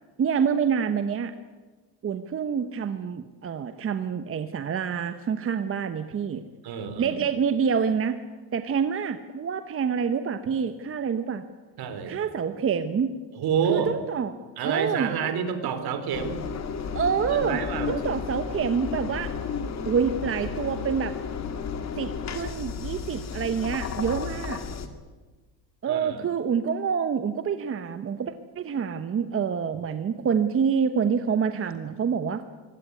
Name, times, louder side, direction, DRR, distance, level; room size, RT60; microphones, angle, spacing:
voice 1, 0.2-1.3 2.0-6.4 7.0-8.2 8.5-11.5 12.1-13.1 13.7-14.3 14.6-15.3 16.9-17.6 17.9-19.3 19.8-21.1 22.0-24.6 25.8-32.4, right 6 dB, 30° right, 9 dB, 1.1 m, -27 dB
voice 2, 6.6-7.2 11.8-12.2 13.3-13.9 14.6-16.4 17.3-17.9 25.9-26.2, right 7 dB, 60° right, 9 dB, 3.6 m, -28 dB
Engine, 16.1-24.9, left 6 dB, 40° left, 2.3 m, -33 dB
23.5 x 17.5 x 9.6 m, 1.3 s
cardioid pair, 135°, 43 cm